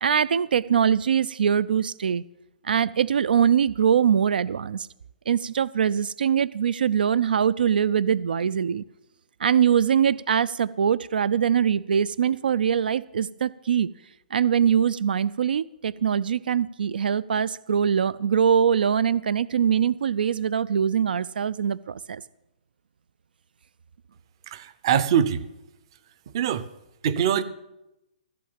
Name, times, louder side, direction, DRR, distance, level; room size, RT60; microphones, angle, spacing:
voice 1, 0.0-2.2 2.6-4.9 5.3-8.8 9.4-13.9 14.3-22.2, right 8 dB, 80° right, 20 dB, 0.4 m, -23 dB
voice 2, 24.5-25.5 26.3-26.7 27.0-27.4, right 8 dB, 35° right, 16 dB, 0.6 m, -23 dB
14.5 x 5.7 x 8.6 m, 0.92 s
hypercardioid pair, 170°, 5 cm